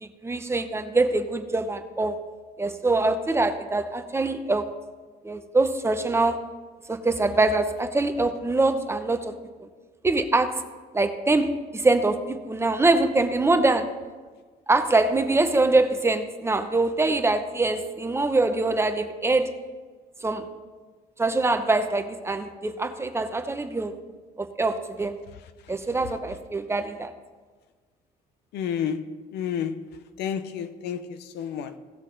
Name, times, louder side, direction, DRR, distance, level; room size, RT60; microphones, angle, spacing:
voice 1, 0.0-2.2 2.6-4.7 5.2-6.4 6.9-9.3 10.0-10.6 10.9-13.9 14.7-19.5 20.2-20.5 21.2-23.9 24.4-25.2 25.7-27.1, right 2 dB, 15° right, 0.7 m, -24 dB
voice 2, 28.5-29.9 30.2-31.8, left 8 dB, 80° left, 0.7 m, -31 dB
17.0 x 6.4 x 3.9 m
cardioid pair, 110°, 17 cm